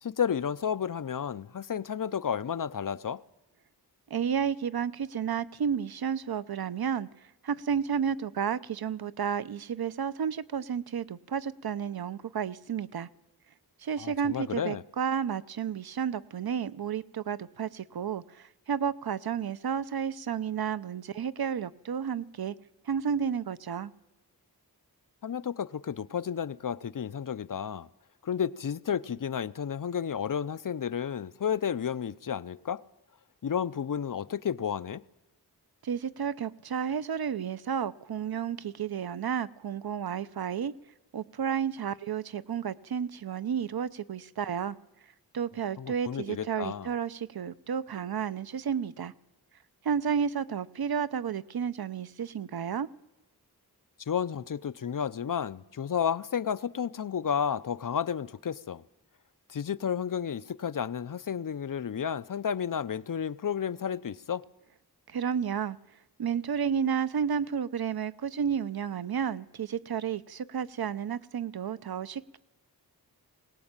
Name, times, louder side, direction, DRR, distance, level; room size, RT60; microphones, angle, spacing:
voice 1, 0.0-3.2 14.0-14.8 25.2-27.9 28.2-32.8 33.4-35.0 45.8-46.9 54.1-58.8 59.5-64.4, left 8 dB, 55° left, 0.7 m, -32 dB
voice 2, 4.1-7.1 7.4-13.1 13.8-22.5 22.9-23.9 35.8-40.7 41.1-44.8 45.3-49.1 49.8-52.9 65.1-65.8 66.2-72.4, right 7 dB, 70° right, 0.8 m, -31 dB
21.0 x 18.5 x 8.9 m
wide cardioid pair, 115°, 39 cm